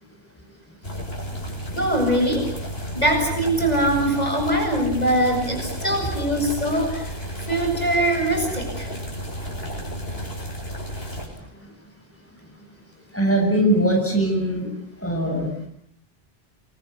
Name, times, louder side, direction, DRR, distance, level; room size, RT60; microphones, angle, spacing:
sound 1, 0.8-11.3, equal, 80° left, 7.8 m, -32 dB
voice 1, 1.7-2.5 2.9-8.9, right 1 dB, 40° left, 2 dB, 7.6 m, -22 dB
voice 2, 13.1-14.7 15.0-15.5, right 1 dB, 10° left, 1 dB, 7.0 m, -21 dB
29.0 x 23.5 x 8.3 m, 0.69 s
omnidirectional pair, 1.0 m